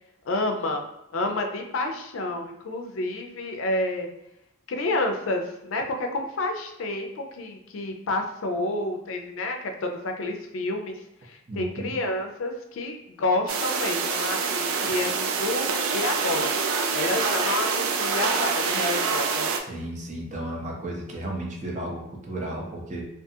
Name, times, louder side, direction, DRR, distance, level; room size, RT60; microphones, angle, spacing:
voice 1, 0.3-0.8 1.1-4.1 4.7-11.0 11.2-16.5 16.9-19.5, left 2 dB, 75° left, 4 dB, 0.4 m, -29 dB
voice 2, 11.5-12.0 19.7-23.0, right 1 dB, 35° right, -1 dB, 0.5 m, -34 dB
sound 1, 13.5-19.6, right 5 dB, 90° right, 0.3 m, -26 dB
2.4 x 2.3 x 2.7 m, 0.87 s
head